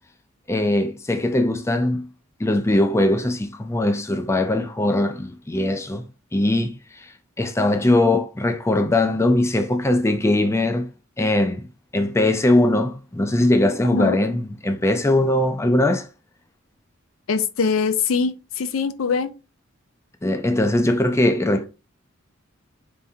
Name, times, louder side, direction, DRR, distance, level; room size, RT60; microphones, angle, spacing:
voice 1, 0.5-2.1 2.4-6.0 6.3-7.1 7.4-10.9 11.2-11.6 11.9-16.1 20.2-21.7, left 1 dB, 15° left, 0.4 m, -20 dB
voice 2, 13.8-14.2 17.3-19.3, left 5 dB, 90° left, 0.5 m, -23 dB
4.2 x 3.5 x 2.8 m
head